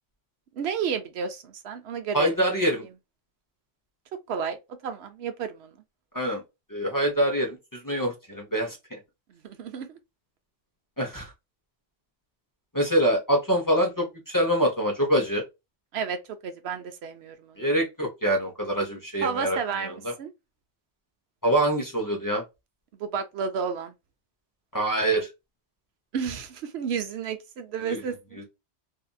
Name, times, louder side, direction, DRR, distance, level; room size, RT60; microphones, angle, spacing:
voice 1, 0.5-2.3 4.3-5.7 9.3-10.0 15.9-17.7 19.2-20.3 23.0-23.9 26.1-28.4, right 6 dB, 70° right, 0.8 m, -32 dB
voice 2, 2.1-2.8 6.1-6.4 6.7-9.0 11.0-11.3 12.7-15.4 17.6-20.1 21.4-22.4 24.7-25.3 27.8-28.0 28.4-28.5, right 1 dB, 20° left, 0.7 m, -25 dB
2.7 x 2.5 x 2.2 m
omnidirectional pair, 1.1 m